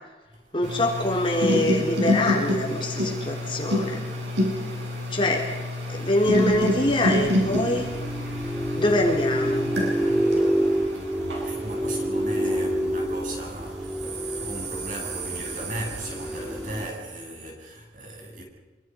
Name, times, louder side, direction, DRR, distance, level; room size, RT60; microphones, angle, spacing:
voice 1, 0.5-4.0 5.1-5.5 5.9-7.9 8.8-9.7, left 1 dB, 30° left, 3.9 m, -24 dB
sound 1, 0.6-13.3 13.8-16.7, left 1 dB, 80° right, 7.9 m, -29 dB
sound 2, 6.3-16.9, right 1 dB, 5° right, 1.9 m, -28 dB
voice 2, 11.0-18.4, right 1 dB, 45° right, 7.9 m, -37 dB
28.5 x 25.5 x 5.4 m
head